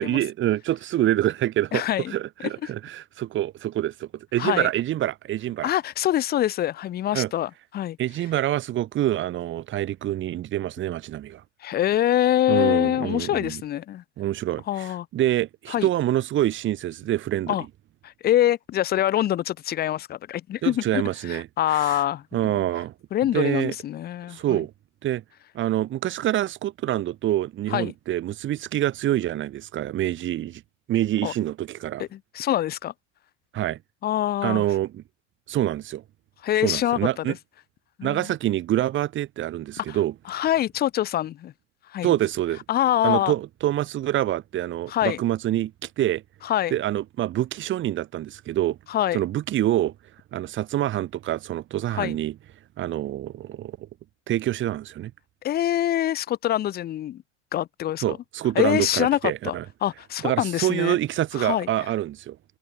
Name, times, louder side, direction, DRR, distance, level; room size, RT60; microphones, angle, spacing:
voice 1, 0.0-1.8 2.1-5.7 7.1-7.3 8.0-11.4 12.5-13.6 14.2-17.5 20.6-21.5 21.7-22.0 22.3-22.9 23.3-23.7 24.3-24.7 25.0-25.2 25.5-30.6 30.9-32.0 33.5-33.8 34.4-35.0 35.5-36.0 36.6-37.3 38.0-40.1 42.0-42.6 43.0-46.2 46.7-48.8 49.1-49.9 50.3-52.3 52.8-53.8 54.3-55.1 58.0-59.6 60.2-62.4, right 13 dB, 30° right, 1.8 m, -26 dB
voice 2, 1.7-2.1 4.4-4.7 5.6-8.0 11.6-14.0 14.7-15.1 15.7-15.9 17.5-17.6 18.0-22.6 23.1-24.6 27.7-27.9 31.2-31.3 32.0-32.9 34.0-34.6 36.4-37.4 38.0-38.3 39.8-40.0 40.3-41.5 41.9-42.2 42.7-43.3 44.9-45.2 46.4-46.7 48.9-49.2 51.9-52.2 55.4-57.2 57.5-58.2 58.5-59.5 59.8-61.0 61.3-61.7, left 12 dB, 25° left, 1.0 m, -25 dB
supercardioid pair, 125°, 37 cm